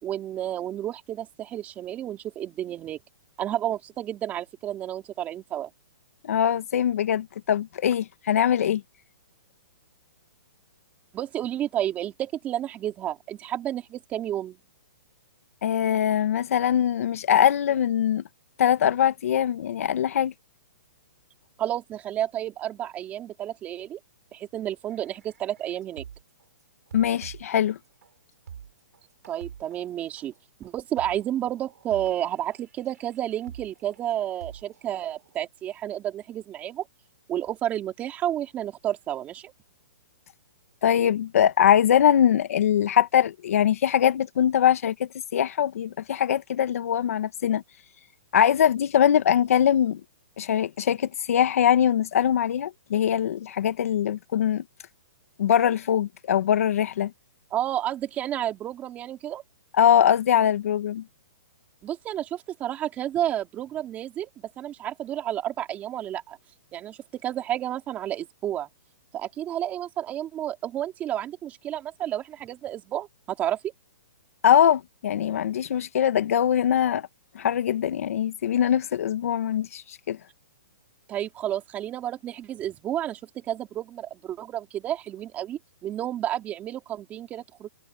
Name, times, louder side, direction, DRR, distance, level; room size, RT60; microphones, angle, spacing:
voice 1, 0.0-3.0 3.4-5.7 11.1-14.6 21.6-24.0 24.3-26.0 29.3-30.3 30.6-36.9 37.3-39.5 57.5-59.4 61.8-64.3 64.6-66.4 66.7-68.7 69.1-73.7 81.1-87.7, right 11 dB, 15° right, 3.8 m, -31 dB
voice 2, 6.2-8.8 15.6-18.2 18.6-20.3 26.9-27.8 40.8-47.6 48.3-50.0 50.4-54.6 55.4-57.1 59.7-61.0 74.4-77.1 77.3-80.2, left 9 dB, 60° left, 1.5 m, -22 dB
sound 1, 24.9-26.5 26.9-35.4, right 8 dB, 75° right, 7.7 m, -47 dB
hypercardioid pair, 160°, 9 cm